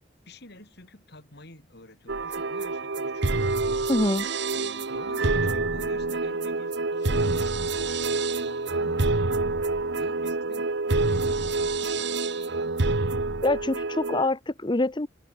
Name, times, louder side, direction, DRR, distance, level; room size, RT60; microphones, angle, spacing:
voice 1, 0.3-3.5 4.5-9.5 9.9-12.6, left 1 dB, 60° left, 5.3 m, -49 dB
sound 1, 2.1-14.3, right 3 dB, 65° right, 1.3 m, -27 dB
voice 2, 3.9-4.3 13.4-15.1, left 2 dB, 25° left, 1.0 m, -25 dB
head